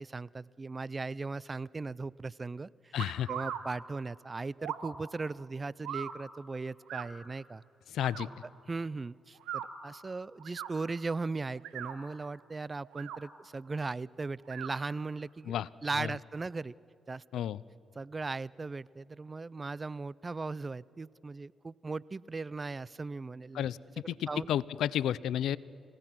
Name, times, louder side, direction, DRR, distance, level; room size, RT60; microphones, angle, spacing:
voice 1, 0.0-3.0 3.3-7.6 8.7-16.7 17.1-17.2 18.0-23.7 24.3-24.5, right 3 dB, 30° right, 22 dB, 0.4 m, -38 dB
voice 2, 2.9-3.3 7.9-8.3 15.5-15.7 16.0-16.1 17.3-17.6 23.5-23.8 24.1-25.6, left 11 dB, 80° left, 21 dB, 0.4 m, -31 dB
sound 1, 3.0-3.6 4.6-4.9 5.8-6.1 6.9-7.1 8.0-8.3 9.4-9.7 10.4-10.7 11.5-12.0 12.8-13.2 14.5-14.7, right 10 dB, 85° right, 1.3 m, -39 dB
29.0 x 17.0 x 6.0 m, 2.8 s
supercardioid pair, 60°, 0 cm